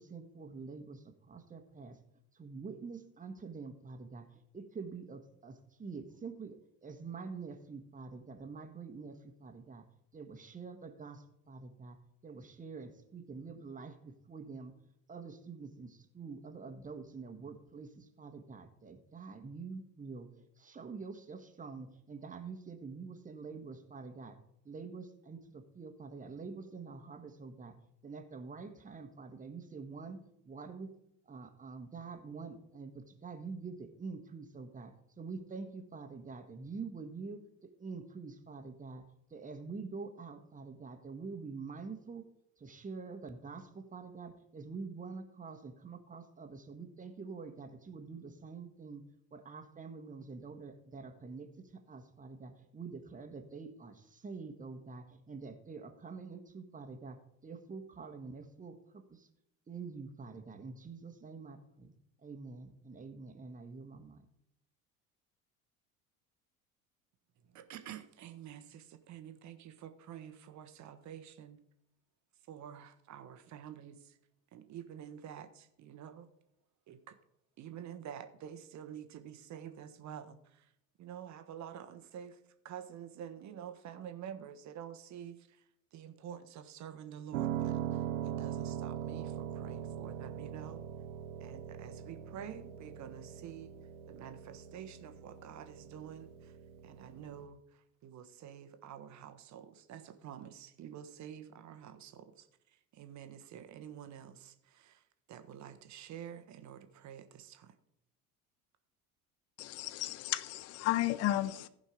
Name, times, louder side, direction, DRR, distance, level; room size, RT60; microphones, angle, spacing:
voice 1, 0.0-2.0 2.3-9.8 10.1-12.0 12.2-14.7 15.1-24.4 24.6-27.7 28.0-30.9 31.2-39.0 39.3-42.3 42.6-49.0 49.3-59.3 59.7-61.9 62.2-64.2, right 4 dB, 20° right, 6 dB, 1.4 m, -46 dB
voice 2, 67.5-71.6 72.5-74.2 74.5-76.3 76.9-77.1 77.6-80.7 81.0-82.4 82.6-85.6 85.9-90.8 91.4-93.7 94.1-96.5 96.8-102.5 102.9-105.0 105.3-107.7, right 9 dB, 40° right, 9 dB, 1.2 m, -48 dB
Piano, 87.3-97.4, right 10 dB, 70° right, 1.0 m, -41 dB
voice 3, 109.6-111.7, left 14 dB, 35° left, 17 dB, 0.6 m, -33 dB
15.0 x 5.4 x 5.1 m, 0.77 s
figure-of-eight pair, 65°, 43 cm